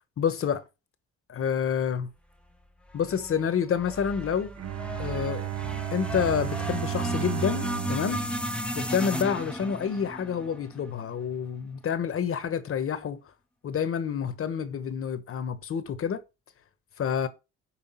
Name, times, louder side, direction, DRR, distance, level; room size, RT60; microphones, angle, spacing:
voice 1, 0.2-0.6 1.3-2.1 2.9-4.5 5.0-5.5 5.9-8.2 8.7-13.2 13.6-16.2 17.0-17.3, left 7 dB, 45° left, 1.1 m, -28 dB
sound 1, 2.9-11.3, equal, 5° left, 0.8 m, -35 dB
Bowed string instrument, 4.6-9.5, right 15 dB, 60° right, 0.7 m, -34 dB
5.8 x 4.7 x 4.4 m
cardioid pair, 90°, 30 cm